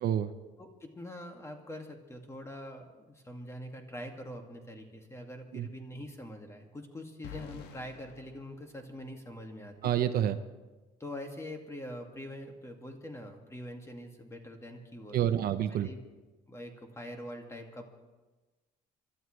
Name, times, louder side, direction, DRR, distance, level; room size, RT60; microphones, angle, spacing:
voice 1, 0.0-0.3 5.5-5.7 9.8-10.4 15.1-15.9, right 10 dB, 65° right, 10 dB, 0.8 m, -28 dB
voice 2, 0.6-9.9 11.0-15.5 15.8-16.0 16.5-17.9, left 1 dB, 15° left, 3 dB, 2.1 m, -44 dB
sound 1, 7.2-9.4, left 7 dB, 85° left, 1.3 m, -49 dB
28.5 x 12.5 x 3.3 m, 1.2 s
cardioid pair, 110°, 17 cm